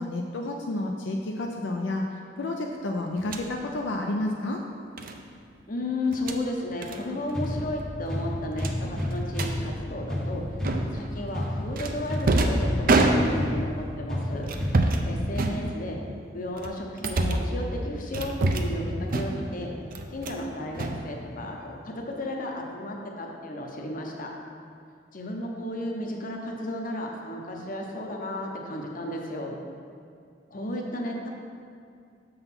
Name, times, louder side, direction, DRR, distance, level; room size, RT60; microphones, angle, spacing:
voice 1, 0.0-2.0 2.4-4.6, left 2 dB, 75° left, 1 dB, 0.5 m, -30 dB
sound 1, 3.2-3.5 5.0-5.2 6.0-6.4 6.8-7.0 7.3-7.5 7.8-7.9 8.6-9.5 10.6-11.1 11.8-13.6 14.4-15.1 15.3-16.1 16.6-17.5 18.1-18.8 19.1-19.6 19.9-20.4 20.7-21.6, right 2 dB, 50° right, 0.5 m, -26 dB
voice 2, 5.7-14.5 15.1-16.0 16.3-19.7 20.1-24.3 25.1-29.6 30.5-31.3, left 1 dB, 50° left, 1 dB, 0.8 m, -34 dB
sound 2, 7.3-15.3, left 1 dB, 5° left, 0.8 m, -31 dB
6.7 x 3.9 x 5.9 m, 2.3 s
head